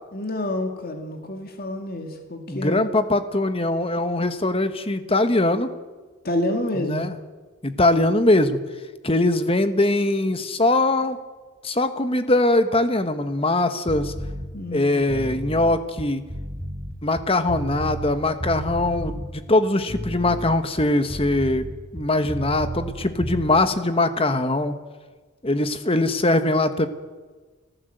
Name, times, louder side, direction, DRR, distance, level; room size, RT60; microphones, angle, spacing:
voice 1, 0.1-2.8 6.2-7.1 14.5-15.0, left 1 dB, 45° left, 4 dB, 2.4 m, -28 dB
voice 2, 2.5-5.7 6.8-7.1 7.6-8.6 9.0-11.2 11.6-14.1 14.7-16.2 17.0-21.6 21.9-24.8 25.4-26.9, left 2 dB, 25° left, 10 dB, 1.3 m, -21 dB
sound 1, 13.9-14.5 15.0-18.1 18.4-19.3 19.8-22.9 23.2-23.5, right 1 dB, 15° right, 2.8 m, -32 dB
30.0 x 14.5 x 8.0 m, 1.4 s
head